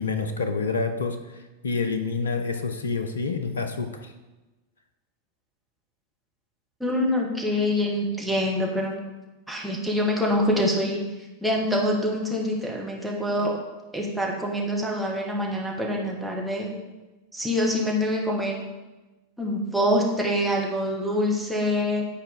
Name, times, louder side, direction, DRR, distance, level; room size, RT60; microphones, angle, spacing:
voice 1, 0.0-4.1, left 4 dB, 70° left, 7 dB, 0.5 m, -28 dB
voice 2, 6.8-9.0 9.5-11.0 11.4-13.6 13.9-16.7 17.3-18.5 19.4-22.0, left 1 dB, ahead, -3 dB, 1.3 m, -25 dB
8.6 x 4.5 x 3.6 m, 1.1 s
figure-of-eight pair, 90°, 0 cm